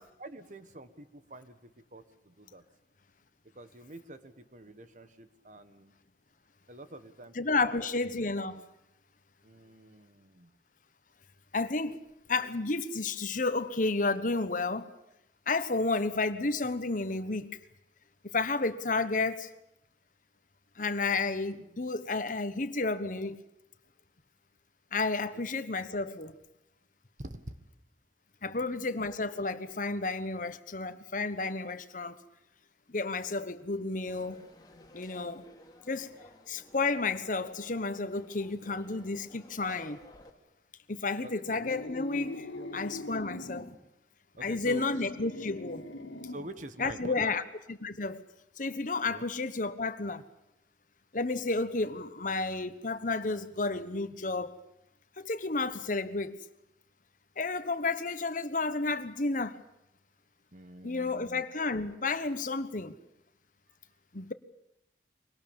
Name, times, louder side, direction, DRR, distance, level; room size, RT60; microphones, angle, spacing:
voice 1, 0.2-2.6 3.5-5.9 6.7-7.9 9.4-10.5 25.3-25.4 27.2-27.4 28.4-28.9 41.2-41.4 42.6-42.7 44.4-44.8 46.2-47.3 49.1-49.2 60.5-61.4, right 1 dB, 45° right, 1.5 m, -47 dB
voice 2, 7.3-8.6 11.5-12.0 12.3-14.9 15.5-17.5 18.3-19.5 20.8-23.4 24.9-26.3 28.4-32.2 32.9-34.4 34.9-35.4 35.9-36.1 36.5-40.0 40.9-42.5 42.7-43.7 44.4-45.8 46.8-47.4 47.7-48.2 48.6-50.2 51.1-54.6 55.2-56.4 57.4-59.6 60.8-63.0 64.1-64.3, left 3 dB, 45° left, 1.2 m, -31 dB
Conversation / Crowd, 34.1-40.3, left 1 dB, 25° left, 2.9 m, -55 dB
sound 1, 41.4-43.8 44.3-46.6, left 1 dB, 85° left, 2.3 m, -42 dB
24.0 x 19.0 x 8.8 m
head